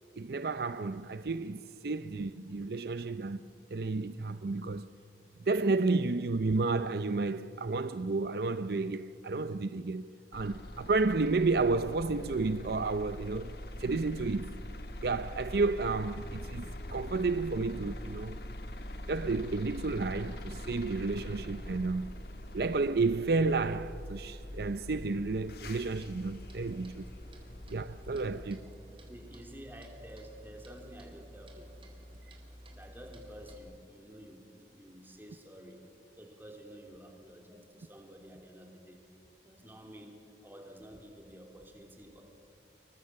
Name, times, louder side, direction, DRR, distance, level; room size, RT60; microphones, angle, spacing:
voice 1, 0.2-3.4 3.7-4.9 5.5-14.6 15.0-18.4 19.1-22.1 22.5-27.0 27.7-28.6, right 3 dB, 60° right, 0.6 m, -31 dB
sound 1, 10.3-28.5, left 1 dB, 60° left, 1.7 m, -43 dB
Clock, 25.4-33.6, equal, 30° right, 3.7 m, -52 dB
voice 2, 28.1-28.7 29.1-31.9 32.7-35.8 36.2-39.0 39.4-42.2, equal, 10° right, 3.2 m, -51 dB
26.0 x 23.0 x 7.5 m
head